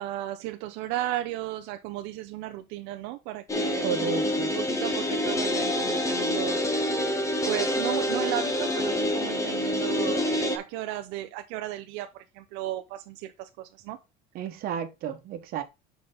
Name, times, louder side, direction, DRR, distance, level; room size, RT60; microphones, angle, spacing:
voice 1, 0.0-3.9 4.5-6.6 7.4-14.0, right 14 dB, 85° right, 0.7 m, -34 dB
sound 1, 3.5-10.6, left 1 dB, 15° left, 1.3 m, -27 dB
voice 2, 3.8-4.5 14.3-15.6, right 9 dB, 60° right, 1.3 m, -32 dB
7.9 x 5.1 x 3.8 m
cardioid pair, 145°, 18 cm